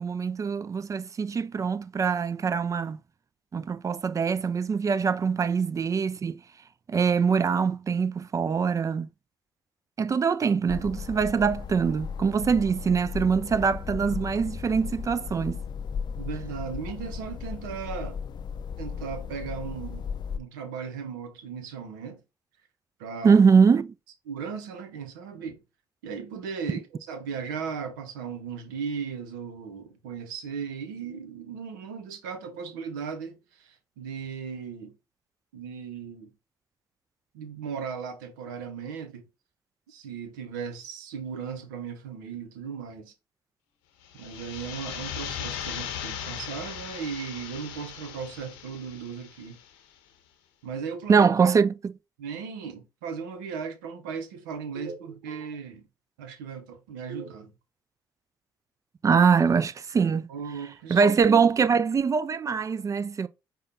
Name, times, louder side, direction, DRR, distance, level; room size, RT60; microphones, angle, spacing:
voice 1, 0.0-3.0 3.5-6.4 6.9-9.1 10.0-15.6 23.2-23.9 51.1-52.0 59.0-60.3 60.9-63.3, right 6 dB, 35° right, 0.4 m, -23 dB
sound 1, 10.7-20.4, left 6 dB, 50° left, 0.4 m, -36 dB
voice 2, 16.2-18.2 18.8-20.1 20.3-22.2 23.0-23.4 24.3-25.6 26.0-34.9 35.5-36.3 37.3-39.2 39.9-43.1 44.1-49.6 50.6-51.3 52.2-55.8 56.2-57.5 60.3-61.0, right 6 dB, 85° right, 0.7 m, -37 dB
sound 2, 44.0-49.7, left 9 dB, 85° left, 0.8 m, -38 dB
5.0 x 2.2 x 4.1 m
hypercardioid pair, 55°, 10 cm